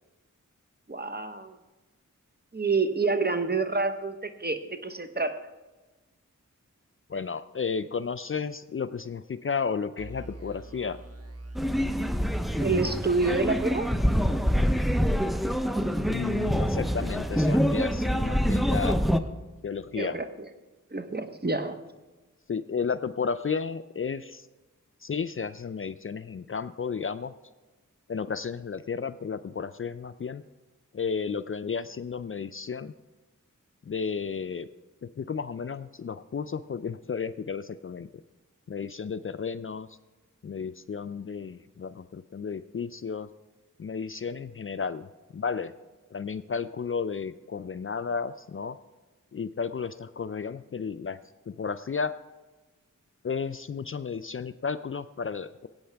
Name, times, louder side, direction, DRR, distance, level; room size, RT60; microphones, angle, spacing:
voice 1, 0.9-1.5 2.5-5.4 12.6-13.9 19.9-20.5 20.9-21.8, right 3 dB, 30° right, 9 dB, 0.9 m, -28 dB
voice 2, 7.1-11.0 16.1-19.0 19.6-20.2 22.5-24.5 25.0-27.3 28.1-30.4 30.9-32.9 33.8-34.7 35.0-38.2 38.7-40.0 40.4-43.3 43.8-45.7 46.1-48.8 49.3-51.2 51.5-52.1 53.2-55.7, left 5 dB, 40° left, 13 dB, 0.4 m, -33 dB
sound 1, 10.0-20.3, right 2 dB, 50° right, 1.2 m, -41 dB
sound 2, 11.6-19.2, equal, ahead, 0.6 m, -26 dB
17.0 x 8.6 x 3.4 m, 1.2 s
wide cardioid pair, 40°, 32 cm